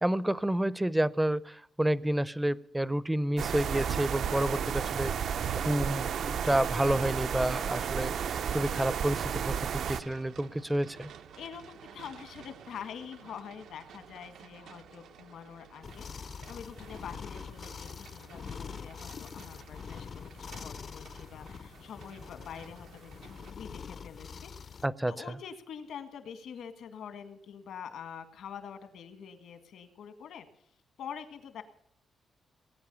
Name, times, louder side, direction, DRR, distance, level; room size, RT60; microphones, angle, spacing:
voice 1, 0.0-8.1 8.5-11.1 24.8-25.1, right 1 dB, 5° right, 19 dB, 0.5 m, -29 dB
sound 1, 3.4-10.0, right 8 dB, 65° right, 0.5 m, -32 dB
sound 2, 4.4-23.5, right 8 dB, 90° right, 0.9 m, -53 dB
voice 2, 11.4-24.5 25.1-30.5 31.0-31.6, left 7 dB, 80° left, 9 dB, 1.8 m, -45 dB
sound 3, 15.8-24.9, left 6 dB, 45° left, 0.5 m, -44 dB
19.5 x 9.3 x 6.9 m, 0.69 s
wide cardioid pair, 155°, 0 cm